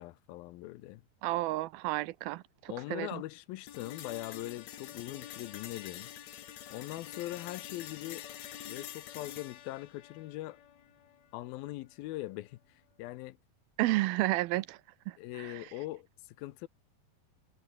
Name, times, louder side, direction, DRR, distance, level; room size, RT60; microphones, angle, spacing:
voice 1, 0.0-1.0 2.7-6.1 6.7-8.3 8.7-10.6 11.3-13.4 15.2-16.7, left 17 dB, 80° left, 2.5 m, -41 dB
voice 2, 1.2-3.2 13.8-14.8 15.1-15.7, right 18 dB, 85° right, 2.5 m, -32 dB
sound 1, 3.7-11.7, left 11 dB, 60° left, 2.1 m, -47 dB
omnidirectional pair, 4.4 m